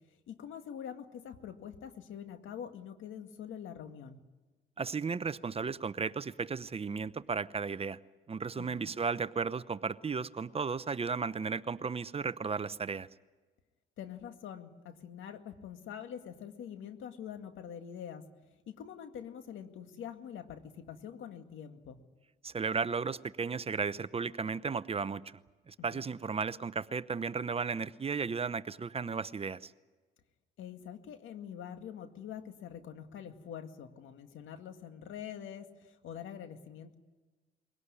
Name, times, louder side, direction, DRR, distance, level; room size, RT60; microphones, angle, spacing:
voice 1, 0.3-4.2 8.6-8.8 14.0-18.2 18.7-22.0 25.9-26.0 30.6-36.9, left 8 dB, 80° left, 8 dB, 2.0 m, -45 dB
voice 2, 4.8-8.0 8.3-13.1 22.4-25.2 25.7-29.7, right 5 dB, 30° right, 16 dB, 0.7 m, -34 dB
22.5 x 17.5 x 9.9 m, 1.3 s
cardioid pair, 90°, 20 cm